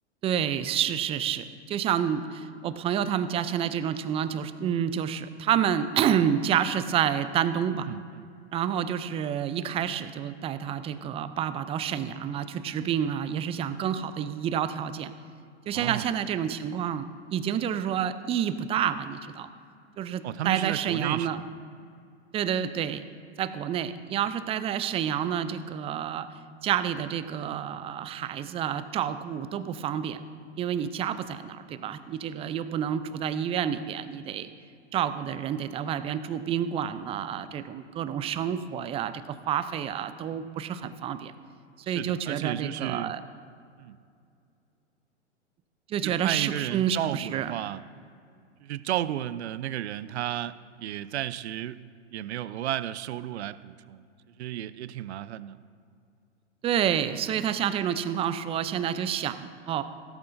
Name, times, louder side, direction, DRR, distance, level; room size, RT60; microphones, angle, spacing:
voice 1, 0.2-7.9 8.5-15.1 15.7-19.5 20.0-21.4 22.3-23.0 23.4-26.3 26.6-30.2 30.6-34.5 34.9-41.3 41.9-43.2 45.9-47.5 56.6-59.8, right 9 dB, 15° right, 13 dB, 0.4 m, -29 dB
voice 2, 7.9-8.3 15.7-16.1 20.2-21.5 41.8-43.1 43.8-44.0 46.0-47.8 48.6-51.8 52.1-54.1 54.4-55.6, right 12 dB, 70° right, 16 dB, 0.6 m, -33 dB
16.5 x 14.0 x 2.6 m, 2.4 s
hypercardioid pair, 105°, 35 cm